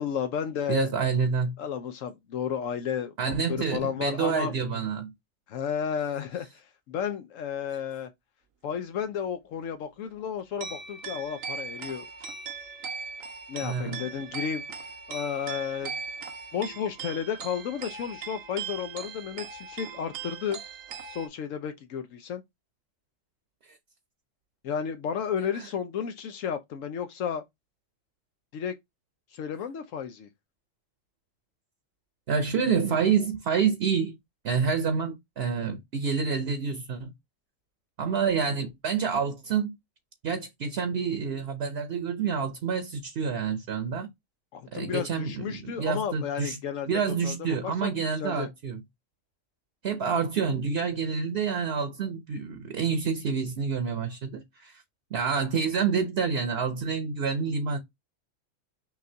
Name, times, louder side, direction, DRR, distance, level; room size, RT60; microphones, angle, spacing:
voice 1, 0.0-0.9 1.6-4.5 5.5-8.1 8.6-12.0 13.5-14.6 15.1-15.9 16.5-20.6 21.0-22.4 24.6-27.4 28.5-28.8 29.3-30.3 44.5-47.4 47.6-48.5, left 8 dB, 80° left, 1.0 m, -32 dB
voice 2, 0.7-1.6 3.2-5.1 13.6-14.0 32.3-34.2 34.4-37.1 38.0-39.7 40.2-44.1 44.7-46.6 46.9-48.8 49.8-54.8 55.1-57.8, right 6 dB, 55° right, 0.9 m, -28 dB
sound 1, 10.2-21.3, right 5 dB, 90° right, 1.1 m, -39 dB
5.9 x 2.4 x 2.7 m
omnidirectional pair, 1.3 m